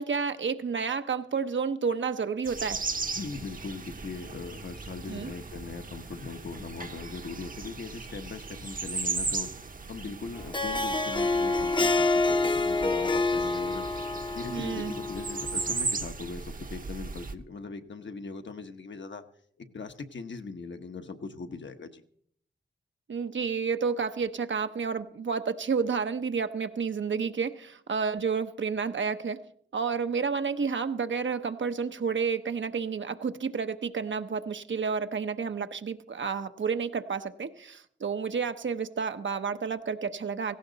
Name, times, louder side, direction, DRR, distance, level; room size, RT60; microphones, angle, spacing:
voice 1, 0.0-2.8 5.1-5.3 14.5-15.0 23.1-29.4 29.7-40.6, right 5 dB, 75° right, 9 dB, 0.8 m, -30 dB
sound 1, 2.4-17.3, right 4 dB, 45° right, 0.8 m, -37 dB
voice 2, 3.1-9.5 9.9-14.0 14.3-19.2 19.6-22.0, left 4 dB, 70° left, 6 dB, 1.1 m, -40 dB
Harp, 10.4-15.8, left 3 dB, 25° left, 0.7 m, -27 dB
17.0 x 16.5 x 4.0 m, 0.62 s
wide cardioid pair, 100°, 20 cm